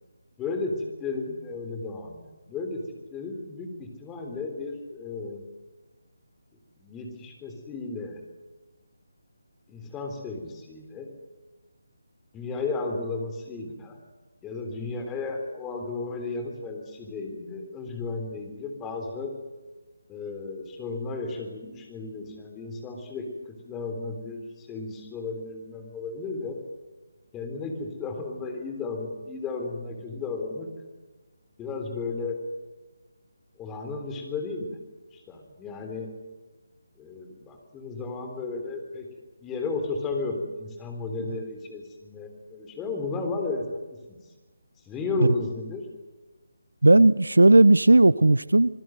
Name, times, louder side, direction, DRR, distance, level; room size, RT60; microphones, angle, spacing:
voice 1, 0.4-2.8 3.1-5.4 6.8-8.2 9.7-11.1 12.3-14.0 14.4-19.3 20.1-23.3 23.6-26.6 27.3-30.7 31.6-32.4 33.6-34.7 35.1-36.1 37.0-39.1 39.4-44.2 44.9-45.9, left 3 dB, 10° left, 3.7 m, -34 dB
voice 2, 46.8-48.8, right 2 dB, 70° right, 0.7 m, -16 dB
27.0 x 20.0 x 8.0 m
figure-of-eight pair, 150°, 0 cm